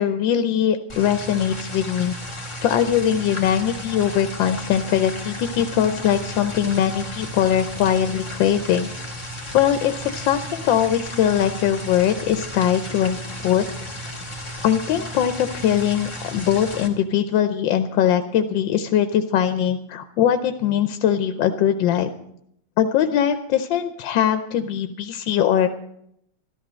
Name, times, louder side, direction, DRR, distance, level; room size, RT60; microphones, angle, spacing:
voice 1, 0.0-2.1 2.6-8.9 9.5-13.6 14.6-22.1 22.8-25.7, left 9 dB, 90° left, 9 dB, 1.5 m, -21 dB
sound 1, 0.9-16.9, equal, 15° left, 1.9 m, -34 dB
13.5 x 12.5 x 6.2 m, 0.73 s
omnidirectional pair, 2.0 m